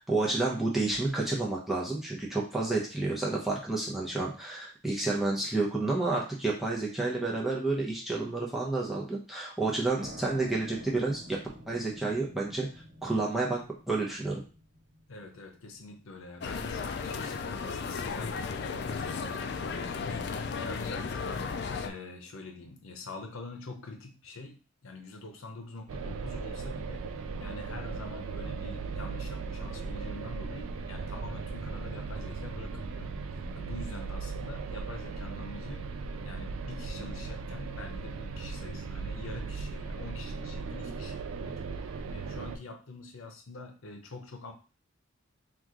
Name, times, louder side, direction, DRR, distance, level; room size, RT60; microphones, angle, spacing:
voice 1, 0.1-11.4 11.7-13.6 13.9-14.4, right 3 dB, ahead, -4 dB, 0.7 m, -30 dB
sound 1, 10.0-17.4, equal, 50° right, 0.7 m, -50 dB
voice 2, 15.1-21.4 21.8-27.1 27.4-35.9 36.2-44.5, left 2 dB, 80° left, 4 dB, 0.7 m, -45 dB
sound 2, 16.4-21.9, left 5 dB, 50° left, 0.3 m, -35 dB
sound 3, 25.9-42.6, right 4 dB, 80° right, 0.3 m, -37 dB
3.0 x 2.4 x 3.6 m, 0.36 s
head